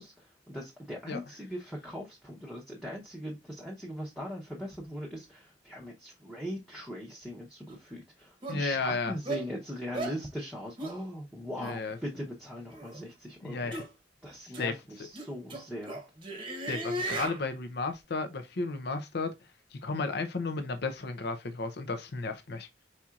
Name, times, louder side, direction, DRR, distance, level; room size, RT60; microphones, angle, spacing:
voice 1, 0.0-13.7 14.2-16.0, equal, ahead, 0.9 m, -40 dB
sound 1, 7.7-7.8 8.4-8.6 9.3-9.4 9.9-10.2 10.8-11.0 11.6-11.7 12.7-13.0 13.7-13.9 14.5-14.7 15.1-17.4, right 2 dB, 25° right, 1.0 m, -36 dB
voice 2, 8.5-9.1 11.6-12.0 13.4-13.8 14.6-14.7 16.7-19.3 19.7-22.7, left 3 dB, 65° left, 0.7 m, -33 dB
4.3 x 4.2 x 2.4 m
head